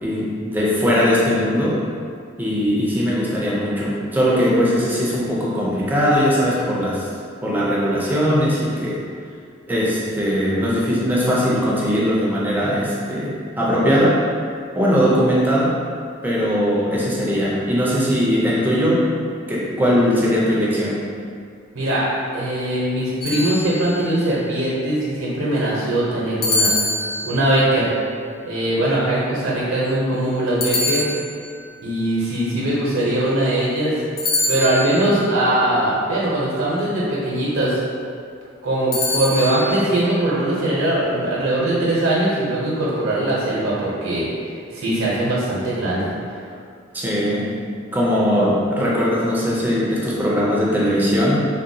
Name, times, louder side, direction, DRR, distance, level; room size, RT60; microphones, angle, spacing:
voice 1, 0.0-1.8 2.4-7.1 7.4-9.0 9.7-14.2 14.7-15.8 16.2-19.1 19.5-21.1 46.9-47.6 47.9-51.4, equal, 10° right, -6 dB, 0.4 m, -20 dB
voice 2, 21.7-26.7 27.2-27.9 28.5-31.0 31.8-33.9 34.5-37.8 38.6-44.3 44.7-46.1, right 1 dB, 80° right, -7 dB, 0.7 m, -21 dB
sound 1, 23.2-24.1 26.4-27.7 30.6-31.7 34.2-35.1 38.9-39.7, left 2 dB, 45° left, 0.5 m, -24 dB
3.7 x 2.1 x 2.6 m, 2.3 s
head